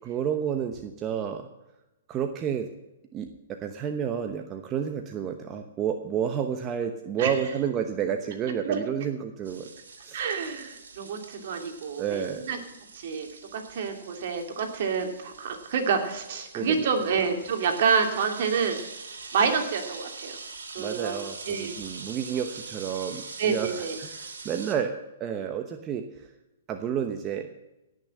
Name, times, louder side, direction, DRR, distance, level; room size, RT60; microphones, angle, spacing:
voice 1, 0.0-1.5 2.1-2.7 3.1-9.7 10.0-10.2 12.0-12.4 16.5-16.9 20.8-24.9 25.2-26.3 26.7-27.5, right 8 dB, 25° right, 6 dB, 1.0 m, -30 dB
sound 1, 9.4-24.7, right 4 dB, 85° right, 2.8 m, -43 dB
voice 2, 10.1-12.6 12.9-18.8 19.3-20.4 20.7-21.7 23.4-24.0, right 6 dB, 60° right, 4 dB, 2.7 m, -28 dB
17.0 x 6.6 x 7.5 m, 0.96 s
hypercardioid pair, 140°, 0 cm